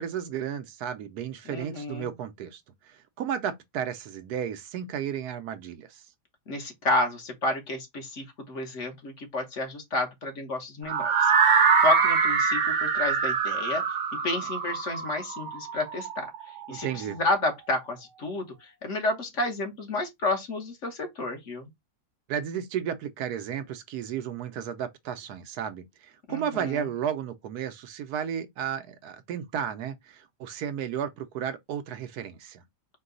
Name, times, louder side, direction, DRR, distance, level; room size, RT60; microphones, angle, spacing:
voice 1, 0.0-6.0 16.7-17.2 22.3-32.6, right 8 dB, 75° right, 1.1 m, -33 dB
voice 2, 1.5-2.1 6.5-13.8 14.2-16.3 16.7-21.7 26.3-26.8, left 2 dB, 50° left, 1.3 m, -31 dB
sound 1, 10.9-16.8, right 6 dB, 55° right, 1.0 m, -24 dB
4.6 x 2.3 x 3.8 m
omnidirectional pair, 1.7 m